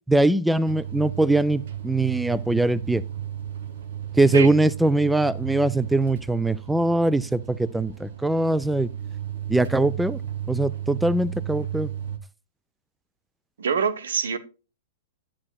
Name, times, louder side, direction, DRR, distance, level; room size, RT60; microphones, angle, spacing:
voice 1, 0.1-3.0 4.1-8.9 9.5-10.2 10.5-11.9, right 2 dB, 5° right, 0.3 m, -22 dB
sound 1, 0.7-12.2, right 10 dB, 70° right, 1.5 m, -34 dB
voice 2, 13.6-14.4, right 6 dB, 85° right, 1.0 m, -24 dB
9.6 x 8.8 x 2.2 m
hypercardioid pair, 130°, 0 cm